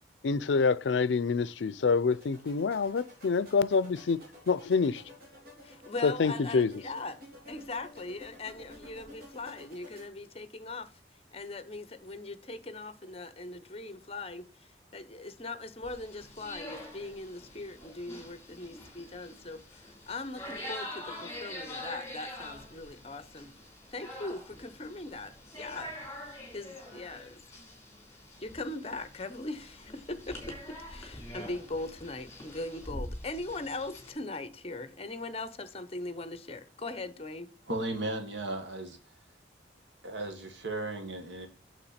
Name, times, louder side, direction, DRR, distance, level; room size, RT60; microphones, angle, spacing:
voice 1, 0.2-5.0 6.0-6.7, left 4 dB, 80° left, 0.5 m, -27 dB
sound 1, 2.1-10.1, left 1 dB, 55° right, 3.7 m, -52 dB
voice 2, 5.6-7.2 7.5-10.9 11.3-14.4 14.9-23.5 23.9-25.9 26.5-27.4 28.4-37.5, left 2 dB, 35° left, 0.8 m, -40 dB
sound 2, 15.8-34.1, left 1 dB, 15° left, 3.7 m, -45 dB
voice 3, 37.7-39.0 40.0-41.5, right 2 dB, 90° right, 1.8 m, -35 dB
8.7 x 7.0 x 4.2 m
head